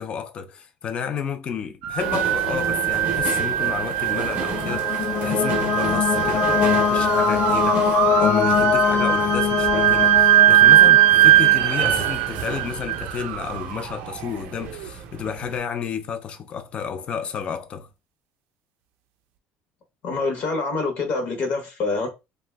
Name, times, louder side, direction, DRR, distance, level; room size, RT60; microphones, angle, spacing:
voice 1, 0.0-17.9, left 7 dB, 25° left, 0.3 m, -31 dB
sound 1, 1.8-14.9, right 13 dB, 90° right, 0.4 m, -20 dB
sound 2, 2.0-15.6, right 4 dB, 35° right, 0.6 m, -33 dB
sound 3, 4.1-11.9, left 7 dB, 85° left, 0.6 m, -23 dB
voice 2, 20.0-22.1, left 3 dB, 45° left, 0.7 m, -26 dB
2.5 x 2.1 x 3.3 m
cardioid pair, 180°, 4 cm